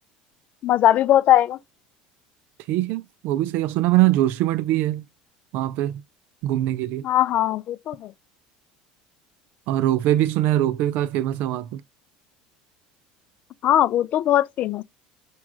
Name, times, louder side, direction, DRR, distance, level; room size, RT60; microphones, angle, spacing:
voice 1, 0.6-1.6 7.0-8.1 13.6-14.8, left 12 dB, 45° left, 0.4 m, -19 dB
voice 2, 2.7-5.1 5.5-6.0 6.4-7.1 9.7-11.8, right 14 dB, 60° right, 0.4 m, -22 dB
6.0 x 2.3 x 2.4 m
supercardioid pair, 120°, 3 cm